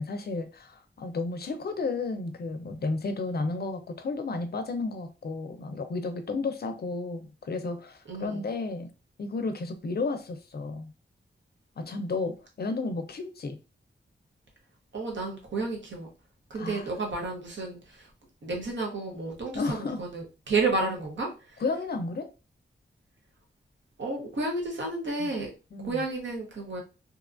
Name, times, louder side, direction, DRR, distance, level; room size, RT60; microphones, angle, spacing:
voice 1, 0.0-8.9 9.2-10.9 11.8-13.6 16.6-16.9 19.5-20.0 21.6-22.3 25.2-25.3 25.7-26.0, left 3 dB, 55° left, 0.5 m, -32 dB
voice 2, 8.1-8.5 14.9-16.1 16.5-18.1 18.4-21.6 24.0-25.5 25.8-26.8, right 3 dB, 70° right, 0.9 m, -31 dB
2.8 x 2.3 x 2.4 m
wide cardioid pair, 105°, 20 cm